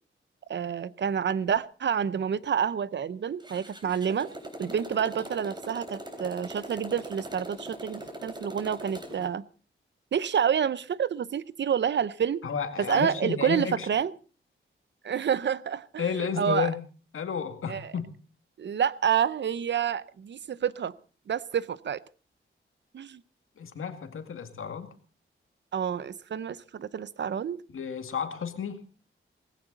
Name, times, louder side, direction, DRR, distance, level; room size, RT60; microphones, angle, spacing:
voice 1, 0.5-4.3 4.6-9.4 10.1-12.4 12.9-14.1 15.0-16.0 16.4-16.7 17.7-17.9 18.6-20.9 21.3-22.0 22.9-23.2 25.7-27.6, right 8 dB, 60° right, 18 dB, 0.7 m, -28 dB
Motorcycle, 3.4-9.3, right 1 dB, 20° right, 3.5 m, -41 dB
voice 2, 12.4-13.9 16.0-16.8 17.1-18.1 23.6-24.9 27.7-28.8, left 7 dB, 80° left, 7 dB, 2.1 m, -32 dB
18.5 x 16.0 x 4.0 m, 0.37 s
wide cardioid pair, 160°, 21 cm